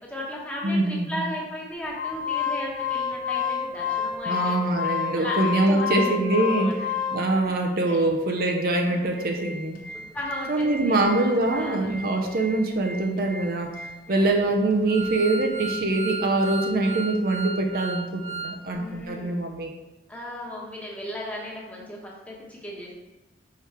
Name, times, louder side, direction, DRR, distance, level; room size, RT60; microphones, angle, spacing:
voice 1, 0.0-4.7 5.1-6.7 7.4-7.5 7.9-8.1 8.8-9.0 9.9-11.0 11.5-11.9 14.1-14.4 18.7-19.3 20.1-22.9, equal, 10° left, -4 dB, 1.1 m, -36 dB
voice 2, 0.6-1.2 4.3-6.8 7.1-9.8 10.5-13.8 14.1-19.7, right 2 dB, 55° right, 3 dB, 0.6 m, -24 dB
Organ, 1.9-7.5 8.0-8.1 8.4-8.5 9.0-18.6 18.9-19.0, left 5 dB, 50° left, 1.2 m, -32 dB
6.0 x 4.6 x 3.4 m, 1.0 s
head